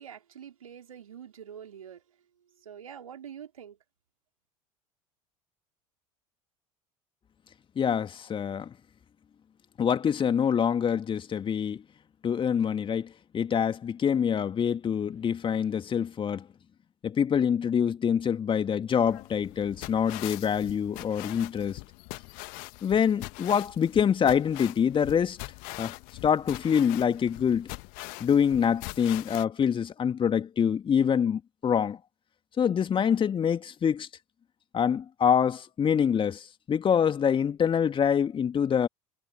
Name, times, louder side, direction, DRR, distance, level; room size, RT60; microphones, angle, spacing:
voice 1, 0.0-2.0 2.6-3.8, right 8 dB, 75° right, 4.1 m, -45 dB
voice 2, 7.8-8.7 9.8-11.8 12.2-16.4 17.0-21.8 22.8-25.4 25.8-25.9 26.2-27.7 28.2-32.0 32.6-34.1 34.7-38.9, left 7 dB, 30° left, 2.3 m, -25 dB
sound 1, 19.1-29.5, left 31 dB, 50° left, 1.4 m, -42 dB
figure-of-eight pair, 70°, 18 cm